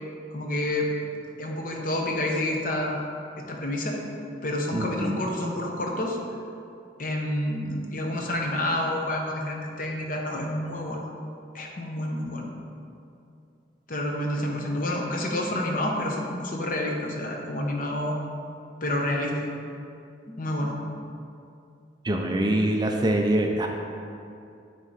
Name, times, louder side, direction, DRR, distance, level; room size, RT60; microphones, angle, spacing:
voice 1, 0.3-0.9 1.4-3.0 3.4-4.0 4.4-6.2 7.0-11.0 11.5-12.5 13.9-18.2 18.8-19.4 20.3-20.8, left 1 dB, 50° left, 0 dB, 0.9 m, -29 dB
voice 2, 4.7-5.2 22.0-23.7, right 1 dB, 25° right, 2 dB, 0.4 m, -24 dB
9.6 x 3.7 x 4.0 m, 2.5 s
head